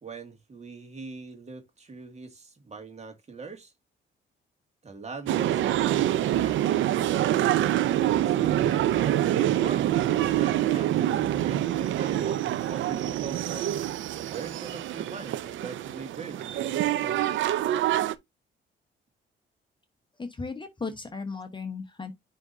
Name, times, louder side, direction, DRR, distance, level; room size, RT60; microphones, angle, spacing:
voice 1, 0.0-3.7 4.8-6.8 8.0-10.1 10.4-13.7 14.2-17.3, right 4 dB, 35° right, 2.1 m, -42 dB
sound 1, 5.3-18.2, right 12 dB, 75° right, 0.6 m, -26 dB
voice 2, 20.2-22.1, left 4 dB, 25° left, 1.1 m, -36 dB
9.8 x 3.7 x 2.7 m
cardioid pair, 90°, 20 cm